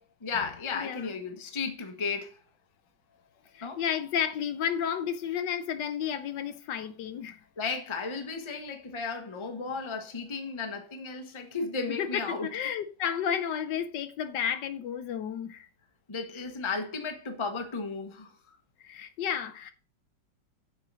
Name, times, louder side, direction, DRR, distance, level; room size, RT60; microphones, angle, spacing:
voice 1, 0.2-2.4 3.6-3.8 7.6-12.5 16.1-18.6, left 4 dB, 20° left, 0.9 m, -34 dB
voice 2, 0.8-1.1 3.5-7.4 11.9-15.7 18.8-19.7, left 8 dB, 75° left, 1.3 m, -32 dB
7.6 x 4.6 x 6.0 m
omnidirectional pair, 2.0 m